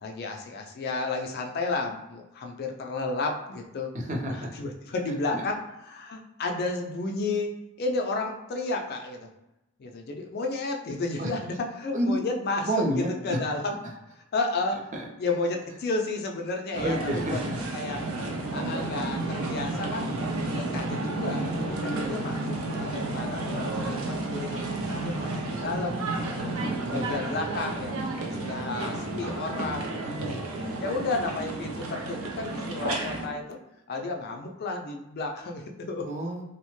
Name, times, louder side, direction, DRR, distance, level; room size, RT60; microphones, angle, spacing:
voice 1, 0.0-3.9 4.3-9.3 9.8-12.7 12.9-13.8 14.3-14.9 15.2-17.4 17.7-18.1 18.5-20.1 20.5-22.4 22.7-26.5 26.9-30.2 30.8-33.6 33.9-36.1, left 3 dB, 50° left, 2 dB, 0.4 m, -32 dB
voice 2, 3.9-4.5 5.3-5.4 11.2-11.3 11.9-12.2 12.6-13.4 14.9-15.1 16.7-17.6 18.0-18.1 21.8-22.1 25.7-26.3 26.6-27.1 30.0-30.4 36.0-36.4, right 1 dB, 35° right, 0 dB, 0.5 m, -30 dB
sound 1, 16.7-33.3, right 2 dB, 80° right, 0.5 m, -32 dB
2.9 x 2.1 x 3.0 m, 0.92 s
head